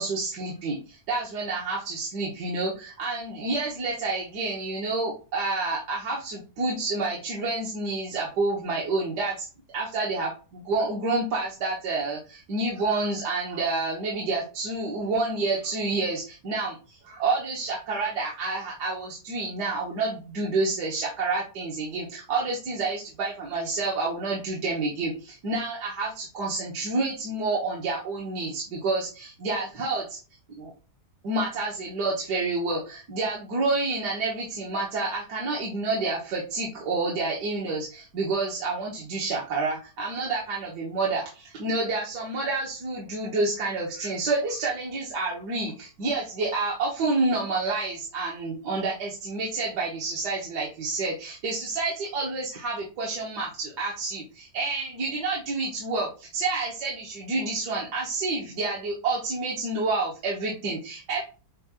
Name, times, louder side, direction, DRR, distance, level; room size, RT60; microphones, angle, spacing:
voice 1, 0.0-9.5 9.7-30.2 30.5-30.7 31.2-61.2, right 3 dB, 75° right, -4 dB, 1.7 m, -29 dB
7.1 x 2.4 x 2.9 m, 0.33 s
omnidirectional pair, 1.9 m